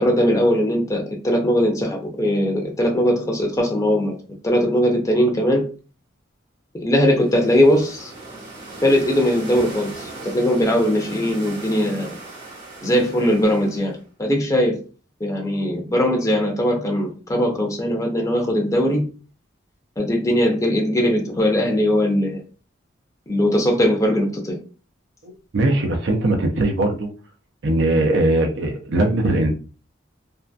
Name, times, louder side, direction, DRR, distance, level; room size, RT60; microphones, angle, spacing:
voice 1, 0.0-4.2 4.4-5.6 6.8-8.1 8.8-12.2 12.8-14.8 15.2-19.0 20.0-22.4 23.3-24.6, equal, 15° left, 0.5 m, -20 dB
sound 1, 7.0-14.1, right 2 dB, 55° right, 1.1 m, -38 dB
voice 2, 25.2-27.1 27.6-29.6, right 2 dB, 70° right, 0.5 m, -20 dB
2.6 x 2.4 x 2.2 m
head